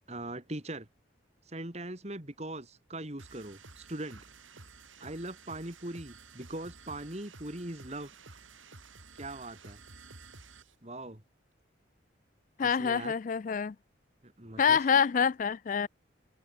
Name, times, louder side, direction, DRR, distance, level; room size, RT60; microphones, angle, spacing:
voice 1, 0.1-0.9 1.5-4.2 5.0-8.1 9.2-9.8 10.8-11.2 12.6-13.1 14.2-14.8, right 1 dB, 35° right, 2.3 m, -41 dB
sound 1, 3.2-10.8, right 4 dB, 85° right, 5.6 m, -52 dB
voice 2, 12.6-13.7 14.6-15.9, left 6 dB, 40° left, 0.3 m, -26 dB
open air
head